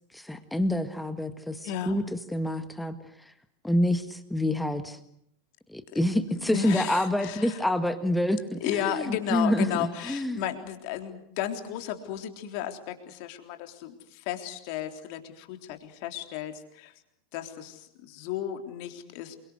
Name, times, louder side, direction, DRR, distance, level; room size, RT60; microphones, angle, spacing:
voice 1, 0.1-3.0 3.3-3.4 3.6-5.0 5.7-10.4, left 1 dB, 5° left, 10 dB, 1.8 m, -27 dB
voice 2, 1.6-2.0 5.9-6.0 6.5-7.6 8.6-16.9 17.3-19.4, left 10 dB, 45° left, 6 dB, 3.6 m, -34 dB
28.5 x 24.0 x 8.1 m, 0.73 s
figure-of-eight pair, 90°, 0 cm